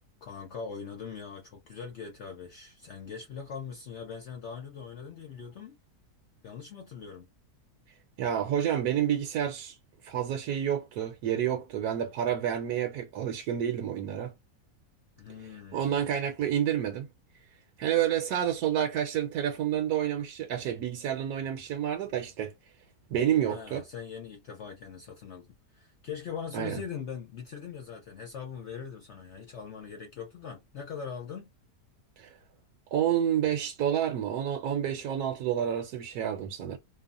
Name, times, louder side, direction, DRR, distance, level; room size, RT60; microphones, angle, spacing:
voice 1, 0.2-5.8 6.4-7.3 15.2-16.0 23.4-31.5, left 6 dB, 75° left, 0.6 m, -41 dB
voice 2, 8.2-9.8 10.0-14.3 15.7-17.1 17.8-22.5 23.1-23.8 26.5-26.8 32.2-32.3 32.9-36.8, right 10 dB, 70° right, 1.1 m, -29 dB
3.1 x 2.1 x 2.4 m
omnidirectional pair, 1.8 m